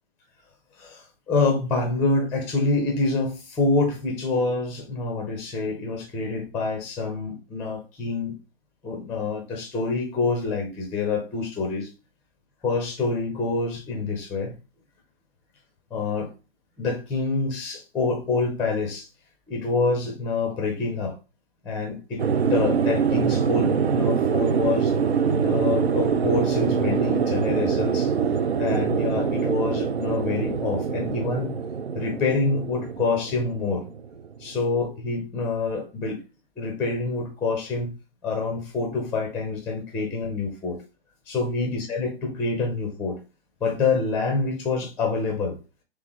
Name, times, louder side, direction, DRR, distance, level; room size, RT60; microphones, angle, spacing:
voice 1, 0.8-8.3 8.8-11.9 12.6-14.6 15.9-16.3 16.8-19.1 19.5-21.2 21.6-22.2 22.5-24.9 25.4-28.1 28.6-31.5 31.9-33.9 34.4-36.2 36.6-37.9 38.2-40.8 41.3-43.2 43.6-45.6, left 3 dB, 5° left, 0.4 m, -26 dB
sound 1, 22.2-34.5, right 6 dB, 80° right, 0.6 m, -24 dB
3.3 x 3.2 x 3.7 m
figure-of-eight pair, 125°, 31 cm